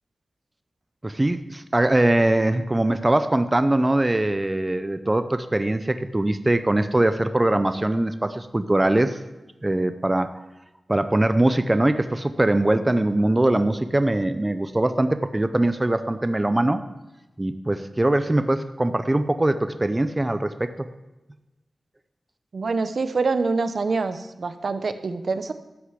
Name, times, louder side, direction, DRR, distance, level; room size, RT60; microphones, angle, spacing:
voice 1, 1.0-9.2 9.6-10.3 10.9-16.8 17.4-20.7, right 1 dB, 20° right, 10 dB, 0.6 m, -22 dB
voice 2, 22.5-25.5, right 4 dB, 65° right, 10 dB, 0.9 m, -25 dB
12.5 x 6.6 x 8.2 m, 1.0 s
wide cardioid pair, 105°, 0 cm